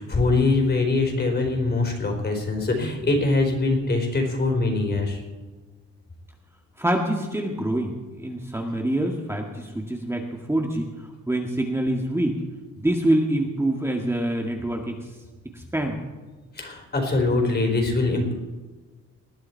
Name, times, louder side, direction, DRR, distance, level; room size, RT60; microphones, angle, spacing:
voice 1, 0.0-5.2 16.5-18.3, left 3 dB, 35° left, 3 dB, 4.2 m, -23 dB
voice 2, 6.8-12.4 12.8-15.0 15.5-16.0, right 1 dB, 10° right, 1 dB, 1.8 m, -26 dB
20.0 x 10.5 x 4.6 m, 1.3 s
cardioid pair, 90°, 30 cm